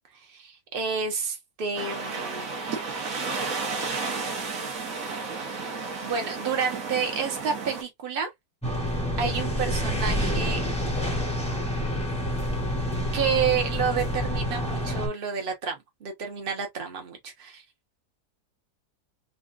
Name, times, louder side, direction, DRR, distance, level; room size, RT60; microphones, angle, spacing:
voice 1, 0.2-2.5 6.0-8.3 8.9-10.6 13.1-17.6, right 6 dB, 40° right, 1.0 m, -30 dB
sound 1, 1.8-7.8, right 4 dB, 60° right, 1.5 m, -32 dB
sound 2, 8.6-15.1, left 1 dB, 5° left, 0.8 m, -28 dB
3.7 x 2.4 x 2.4 m
omnidirectional pair, 1.7 m